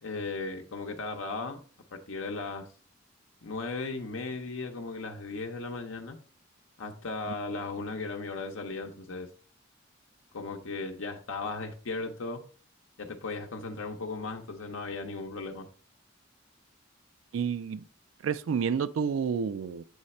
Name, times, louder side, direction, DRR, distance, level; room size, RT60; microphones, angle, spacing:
voice 1, 0.0-1.6 1.9-2.7 3.4-6.2 6.8-9.3 10.3-12.4 13.0-15.7, left 3 dB, 85° left, 0.7 m, -36 dB
voice 2, 17.3-17.8 18.2-19.8, right 6 dB, 90° right, 0.3 m, -29 dB
7.9 x 3.2 x 4.1 m
head